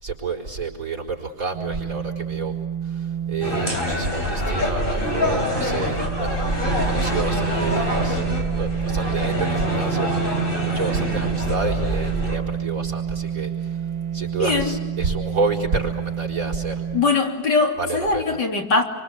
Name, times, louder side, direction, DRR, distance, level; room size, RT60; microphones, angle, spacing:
voice 1, 0.0-2.5 2.8-6.5 6.9-8.2 8.6-10.5 10.7-13.8 14.1-16.8 17.8-18.4, right 4 dB, 50° right, -3 dB, 4.9 m, -29 dB
sound 1, 1.5-17.0, right 8 dB, 80° right, 2.6 m, -29 dB
sound 2, 3.4-12.4, equal, 30° left, 4.1 m, -25 dB
voice 2, 10.9-11.3 14.4-14.8 16.9-18.8, left 4 dB, 75° left, 2 dB, 3.9 m, -22 dB
27.0 x 25.0 x 8.1 m, 1.2 s
omnidirectional pair, 1.9 m